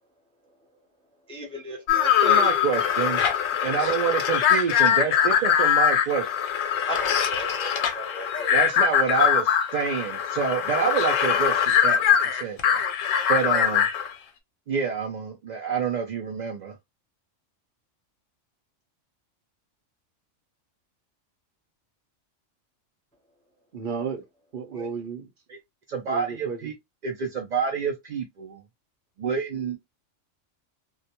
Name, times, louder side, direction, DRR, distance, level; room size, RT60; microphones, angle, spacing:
voice 1, 1.3-2.5 6.9-8.6, equal, 10° left, 0.4 m, -35 dB
sound 1, 1.9-14.1, left 9 dB, 85° left, 1.0 m, -22 dB
voice 2, 2.2-3.2 3.6-6.3 8.5-12.8 13.3-13.9 14.7-16.8 24.7-24.9 25.9-26.7 27.0-28.6 29.2-29.8, right 6 dB, 70° right, 0.4 m, -28 dB
voice 3, 23.7-24.3 24.5-25.3 26.1-26.7, right 6 dB, 50° right, 0.7 m, -33 dB
2.3 x 2.1 x 2.7 m
omnidirectional pair, 1.3 m